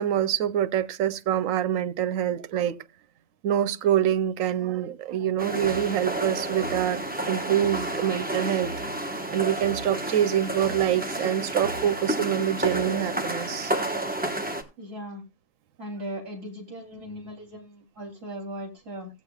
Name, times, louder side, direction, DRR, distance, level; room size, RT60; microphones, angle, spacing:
voice 1, 0.0-2.8 3.4-8.7 9.3-13.7, right 10 dB, 85° right, 1.1 m, -25 dB
sound 1, 5.4-14.6, right 1 dB, 5° right, 1.1 m, -30 dB
sound 2, 5.6-13.8, right 1 dB, 60° left, 4.2 m, -44 dB
voice 2, 14.8-15.2 15.8-19.1, equal, 50° right, 3.3 m, -38 dB
16.0 x 8.1 x 2.3 m
omnidirectional pair, 1.3 m